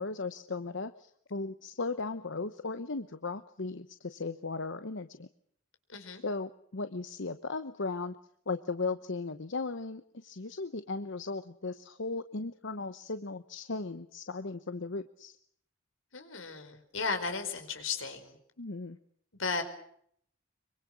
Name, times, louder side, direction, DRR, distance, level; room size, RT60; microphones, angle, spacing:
voice 1, 0.0-5.3 6.2-8.2 8.5-15.4 18.6-19.0, left 3 dB, 65° left, 10 dB, 1.0 m, -37 dB
voice 2, 5.9-6.2 16.1-18.4 19.4-19.6, left 4 dB, 85° left, 7 dB, 4.8 m, -35 dB
25.5 x 23.5 x 6.2 m, 0.67 s
head